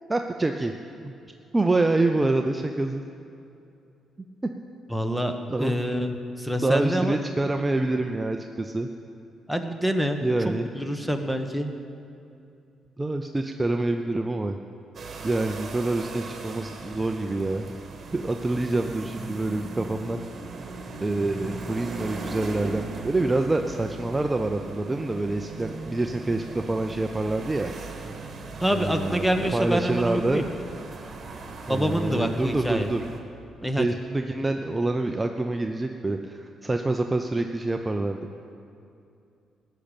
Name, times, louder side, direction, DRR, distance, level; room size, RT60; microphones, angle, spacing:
voice 1, 0.1-0.7 1.0-1.1 1.5-3.0 5.5-5.7 6.6-8.9 10.2-10.7 13.0-14.6 15.2-17.7 18.1-20.2 21.0-27.7 28.7-29.2 29.5-30.4 31.7-33.1 33.8-38.2, right 2 dB, 20° right, 5 dB, 0.6 m, -26 dB
voice 2, 4.9-7.2 9.5-11.7 28.6-30.5 31.7-32.9 33.6-33.9, equal, 5° left, 6 dB, 1.1 m, -26 dB
sound 1, 14.9-33.2, right 3 dB, 45° right, 1.7 m, -39 dB
15.0 x 6.6 x 8.9 m, 2.6 s
cardioid pair, 90°, 0 cm